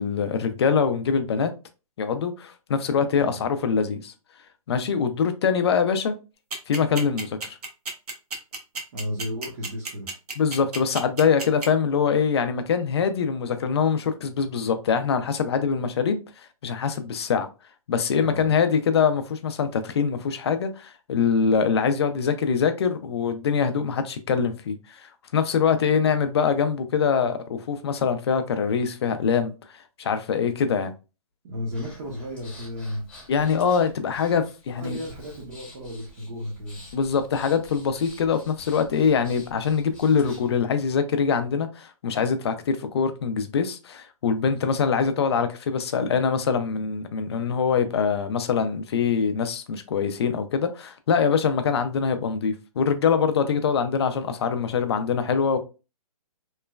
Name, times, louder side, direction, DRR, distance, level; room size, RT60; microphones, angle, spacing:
voice 1, 0.0-1.5 2.0-4.1 4.7-6.1 6.7-7.6 10.4-16.2 16.6-17.5 17.9-29.5 30.0-30.9 33.3-35.0 36.9-55.6, left 6 dB, 45° left, 0.4 m, -24 dB
sound 1, 6.5-11.7, right 3 dB, 80° right, 0.9 m, -31 dB
voice 2, 8.9-10.1 18.2-18.5 31.4-33.0 34.7-36.8, left 1 dB, 30° right, 0.6 m, -33 dB
Breathing, 31.7-40.6, left 1 dB, 5° left, 0.8 m, -48 dB
3.0 x 2.1 x 2.2 m
hypercardioid pair, 160°, 19 cm